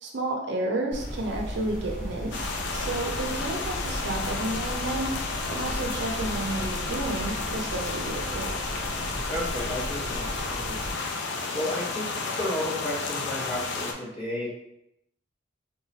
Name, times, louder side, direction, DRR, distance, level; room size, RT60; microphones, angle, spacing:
voice 1, 0.0-5.1 5.5-8.5, right 2 dB, 60° right, 1 dB, 0.5 m, -31 dB
sound 1, 0.9-10.9, equal, 5° left, 1.3 m, -36 dB
sound 2, 2.3-13.9, left 4 dB, 60° left, 0.4 m, -32 dB
voice 2, 9.3-10.8 11.5-14.5, left 1 dB, 30° left, -8 dB, 1.3 m, -32 dB
2.9 x 2.3 x 3.9 m, 0.83 s
head